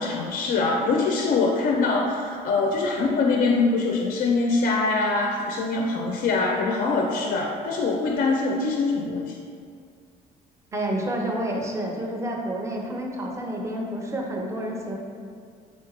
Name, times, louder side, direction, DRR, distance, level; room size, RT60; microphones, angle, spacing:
voice 1, 0.0-9.4, left 3 dB, 50° left, 0 dB, 0.4 m, -23 dB
voice 2, 10.7-15.0, right 1 dB, 15° right, 0 dB, 0.5 m, -29 dB
3.3 x 3.1 x 2.9 m, 2.1 s
cardioid pair, 110°, 17 cm